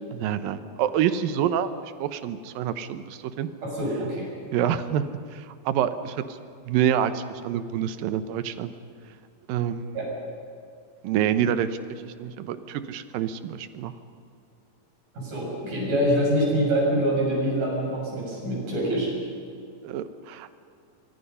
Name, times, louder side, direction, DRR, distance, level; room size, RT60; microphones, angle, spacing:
voice 1, 0.1-1.7 2.0-3.5 4.5-5.1 5.3-6.2 6.7-8.7 9.5-10.0 11.0-13.9 19.8-20.6, right 9 dB, 75° right, 11 dB, 2.6 m, -27 dB
voice 2, 3.6-4.3 9.9-10.1 15.1-19.1, equal, 55° right, -3 dB, 8.3 m, -25 dB
25.5 x 24.0 x 5.6 m, 2.4 s
omnidirectional pair, 4.3 m